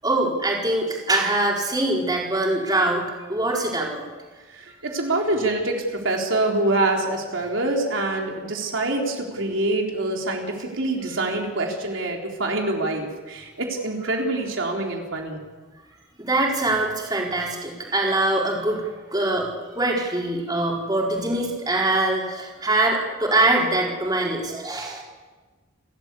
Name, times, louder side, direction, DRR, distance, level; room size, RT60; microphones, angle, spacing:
voice 1, 0.0-3.0 3.3-4.0 16.2-18.8 19.1-19.5 19.7-25.0, right 2 dB, 20° right, -2 dB, 4.5 m, -23 dB
voice 2, 4.5-15.4, right 2 dB, 80° right, 0 dB, 3.8 m, -25 dB
29.5 x 13.0 x 8.4 m, 1.3 s
head